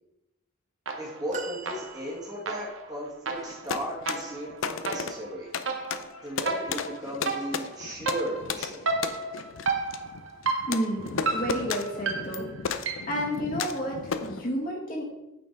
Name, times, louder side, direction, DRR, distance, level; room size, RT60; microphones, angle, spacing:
sound 1, 0.9-1.3 1.7-13.3, right 3 dB, 80° right, 1.1 m, -33 dB
voice 1, 1.0-5.5 6.2-8.8, equal, 20° right, -5 dB, 1.9 m, -36 dB
sound 2, 1.3-2.7 3.5-3.6, right 3 dB, 35° right, 0.7 m, -40 dB
sound 3, 3.4-14.5, left 6 dB, 80° left, 0.5 m, -35 dB
voice 2, 10.6-12.5 13.1-15.0, equal, 45° left, -2 dB, 1.9 m, -31 dB
8.7 x 4.4 x 4.6 m, 0.90 s
head